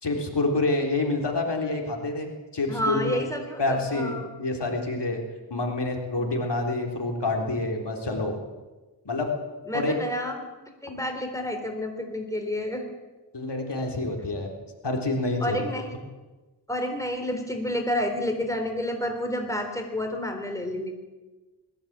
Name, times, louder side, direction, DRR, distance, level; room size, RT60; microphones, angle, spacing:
voice 1, 0.0-3.2 3.6-5.2 5.5-8.4 9.1-9.3 9.7-9.9 13.3-14.5 14.8-15.6, left 2 dB, 65° left, 1 dB, 3.9 m, -27 dB
voice 2, 2.7-4.3 5.5-5.6 6.2-6.3 7.7-7.9 9.7-10.4 10.8-12.8 15.4-16.0 16.7-21.0, left 1 dB, 5° left, 4 dB, 3.7 m, -30 dB
21.5 x 16.0 x 8.8 m, 1.2 s
wide cardioid pair, 95°, 44 cm